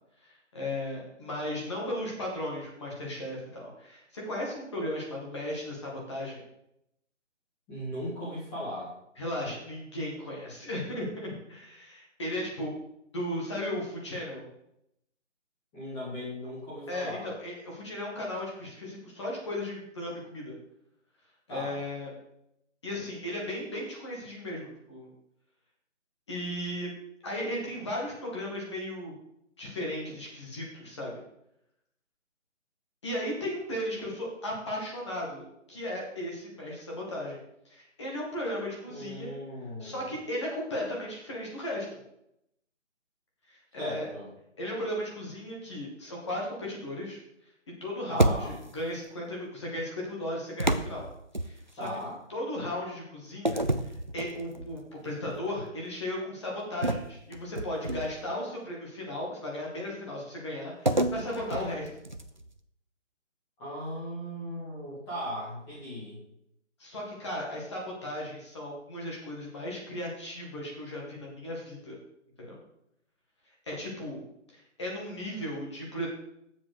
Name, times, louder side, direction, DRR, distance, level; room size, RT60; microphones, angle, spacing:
voice 1, 0.2-6.4 9.2-12.8 13.1-14.4 16.9-20.5 21.5-22.1 22.8-25.1 26.3-26.9 27.2-29.2 29.6-31.1 33.0-35.4 35.7-37.4 37.7-39.3 39.8-42.0 43.5-44.1 44.6-47.2 47.8-51.0 51.4-51.9 52.3-61.9 66.8-72.0 72.4-72.6 73.6-74.2 74.5-76.1, left 1 dB, 25° left, -3 dB, 2.0 m, -36 dB
voice 2, 7.7-9.0 15.7-17.3 21.5-21.8 38.9-40.0 43.8-44.3 48.1-48.6 51.8-52.2 63.6-66.2, equal, 5° left, -9 dB, 1.9 m, -37 dB
sound 1, 48.2-48.8 50.6-51.9 53.4-54.8 55.3-55.5 56.8-58.3 60.9-62.5, right 1 dB, 40° right, 0.4 m, -29 dB
7.5 x 7.3 x 5.0 m, 0.79 s
hypercardioid pair, 170°, 37 cm